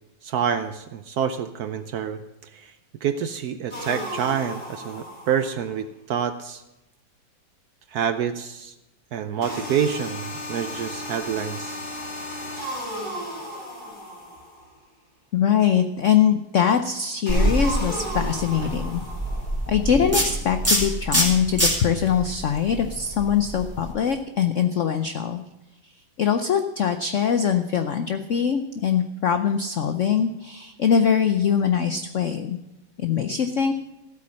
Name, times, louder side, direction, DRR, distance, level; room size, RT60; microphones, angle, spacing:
voice 1, 0.2-2.7 3.0-6.6 7.9-8.7 9.1-11.8, right 8 dB, 70° right, 10 dB, 0.9 m, -27 dB
sound 1, 3.7-5.7 9.4-14.7 17.3-19.7, equal, 40° left, 4.9 m, -34 dB
voice 2, 15.3-19.0 19.7-25.4 26.2-32.6 33.0-33.7, left 8 dB, 80° left, 8 dB, 0.6 m, -22 dB
sound 2, 17.3-23.9, right 1 dB, 5° right, 3.2 m, -25 dB
15.0 x 8.6 x 6.3 m, 0.96 s
omnidirectional pair, 2.1 m